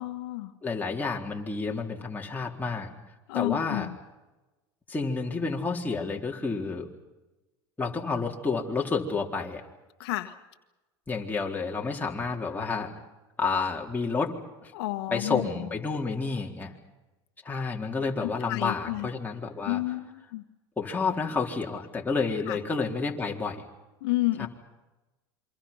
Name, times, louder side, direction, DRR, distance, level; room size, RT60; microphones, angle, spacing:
voice 1, 0.0-0.5 3.3-4.0 10.0-10.3 14.7-15.7 18.2-19.1 19.6-20.4 22.5-22.6 24.0-24.5, left 18 dB, 80° left, 7 dB, 1.5 m, -31 dB
voice 2, 0.6-2.9 3.3-3.9 4.9-6.9 7.8-9.6 11.1-12.9 13.4-14.3 14.6-14.7 15.1-16.7 17.4-19.8 20.8-23.6 24.4-24.5, left 4 dB, 15° left, -1 dB, 4.0 m, -30 dB
27.5 x 25.0 x 5.7 m, 1.1 s
supercardioid pair, 105°, 13 cm